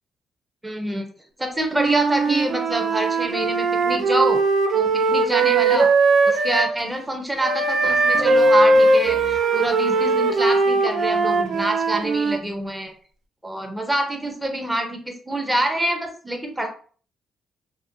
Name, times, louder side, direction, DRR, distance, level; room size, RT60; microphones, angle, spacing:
voice 1, 0.6-1.1 1.4-4.4 4.7-5.9 6.3-12.9 13.4-16.7, right 1 dB, 10° right, 5 dB, 0.6 m, -26 dB
Wind instrument woodwind instrument, 1.7-6.7 7.4-12.4, right 3 dB, 65° right, 0.4 m, -19 dB
sound 1, 5.1-5.9 7.8-11.5, left 5 dB, 50° left, 0.4 m, -38 dB
2.5 x 2.1 x 2.6 m, 0.43 s
cardioid pair, 90°, 0 cm